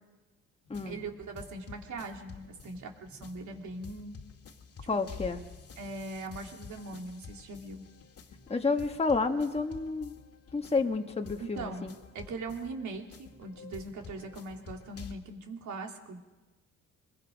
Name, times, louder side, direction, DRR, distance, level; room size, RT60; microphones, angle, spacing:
sound 1, 0.6-15.1, left 5 dB, 55° left, 2.0 m, -50 dB
voice 1, 0.8-4.1 5.8-7.8 11.5-16.2, right 3 dB, 70° right, 2 dB, 2.9 m, -41 dB
voice 2, 4.9-5.4 8.5-10.1 10.5-12.0, left 4 dB, 20° left, 4 dB, 1.4 m, -30 dB
23.5 x 21.5 x 5.2 m, 1.2 s
cardioid pair, 90°, 30 cm